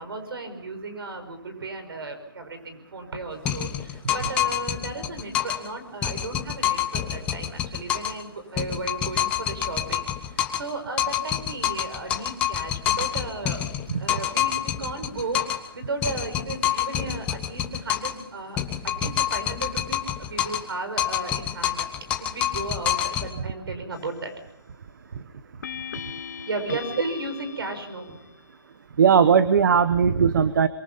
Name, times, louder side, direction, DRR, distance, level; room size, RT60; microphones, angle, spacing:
voice 1, 0.0-13.6 14.0-21.9 22.2-24.3 26.5-28.2, right 3 dB, 80° right, 8 dB, 5.5 m, -35 dB
sound 1, 3.4-5.7 6.0-8.2 8.6-10.7 11.0-15.7 16.0-18.2 18.6-20.7 21.0-23.3, left 11 dB, 10° left, 0.8 m, -27 dB
sound 2, 23.9-24.4 25.6-28.4, left 7 dB, 45° left, 1.1 m, -39 dB
voice 2, 29.0-30.7, right 6 dB, 55° right, 14 dB, 0.9 m, -18 dB
23.5 x 23.0 x 5.5 m, 0.74 s
hypercardioid pair, 170°, 12 cm